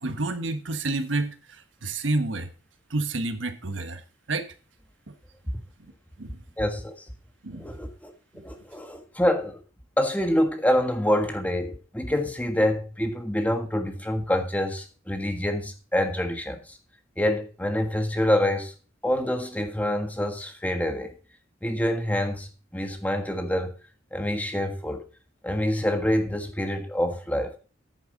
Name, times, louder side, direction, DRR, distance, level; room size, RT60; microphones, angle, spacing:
voice 1, 0.0-2.5 2.9-4.0 4.3-4.5 5.1-5.2 6.2-6.4 7.4-7.7 8.3-8.4, right 2 dB, 75° right, 1.4 m, -29 dB
voice 2, 6.6-6.9 7.6-8.1 8.4-9.6 10.0-16.8 17.2-18.7 19.0-21.1 21.6-23.7 24.1-25.0 25.4-27.6, left 1 dB, 10° left, 1.5 m, -26 dB
10.5 x 8.9 x 4.1 m
head